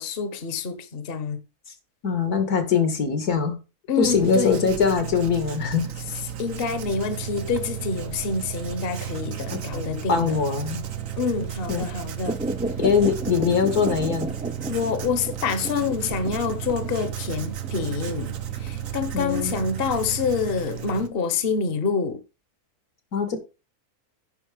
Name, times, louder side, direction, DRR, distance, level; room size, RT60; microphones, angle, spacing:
voice 1, 0.0-1.4 3.9-4.6 6.4-10.4 11.2-12.4 14.7-22.2, left 5 dB, 40° left, 1.2 m, -27 dB
voice 2, 2.0-3.6 4.0-5.9 9.5-10.8 11.7-11.9 12.8-14.3 19.1-19.6 23.1-23.4, left 5 dB, 80° left, 2.3 m, -22 dB
Writing, 4.0-21.1, right 9 dB, 65° right, 1.3 m, -35 dB
sound 1, 6.9-20.5, right 15 dB, 85° right, 1.5 m, -38 dB
sound 2, 12.3-21.1 21.5-21.6, right 1 dB, 5° right, 0.7 m, -34 dB
10.0 x 5.6 x 5.0 m
omnidirectional pair, 1.6 m